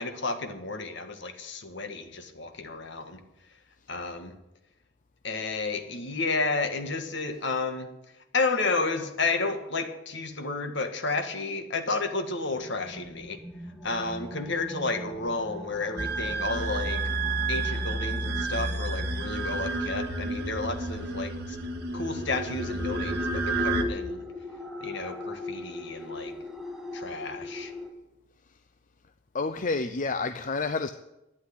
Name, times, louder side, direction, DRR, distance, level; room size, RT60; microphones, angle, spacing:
voice 1, 0.0-3.2 3.9-4.3 5.2-7.9 8.3-13.4 13.8-17.0 17.5-21.6 21.9-24.2 24.8-26.3 26.9-27.7, left 3 dB, 60° left, 7 dB, 1.7 m, -31 dB
sound 1, 12.2-27.9, left 2 dB, ahead, 1.6 m, -41 dB
sound 2, 16.0-23.8, right 2 dB, 50° right, 1.6 m, -30 dB
voice 2, 29.3-30.9, left 3 dB, 40° left, 9 dB, 0.6 m, -29 dB
12.0 x 9.8 x 9.8 m, 0.93 s
head